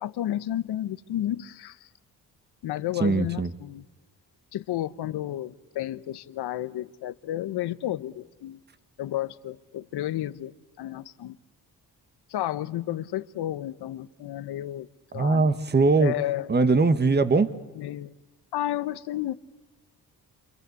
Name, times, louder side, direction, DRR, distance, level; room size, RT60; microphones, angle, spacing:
voice 1, 0.0-1.9 2.6-3.8 4.5-8.6 9.0-11.4 12.3-14.9 15.1-15.5 16.0-16.5 17.8-18.1 18.5-19.3, left 13 dB, 75° left, 14 dB, 1.1 m, -32 dB
voice 2, 3.0-3.5 15.1-16.1 16.5-17.5, right 3 dB, 25° right, 11 dB, 1.5 m, -21 dB
28.0 x 25.5 x 8.3 m, 1.2 s
cardioid pair, 70°, 40 cm